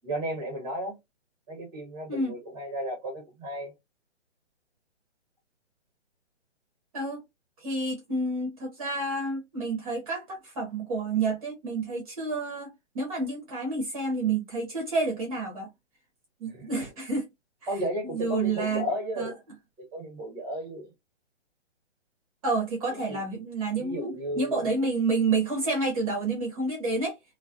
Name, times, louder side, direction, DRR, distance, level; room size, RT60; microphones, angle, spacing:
voice 1, 0.0-1.0 1.5-3.7 16.5-16.8 17.7-19.4 19.9-20.9 22.9-23.2 23.8-24.7, equal, 10° right, 1.0 m, -34 dB
voice 2, 6.9-7.2 7.6-15.7 16.4-17.3 18.0-18.9 19.2-19.3 22.4-27.2, right 3 dB, 30° right, 0.8 m, -29 dB
2.3 x 2.2 x 2.5 m
hypercardioid pair, 150°, 35 cm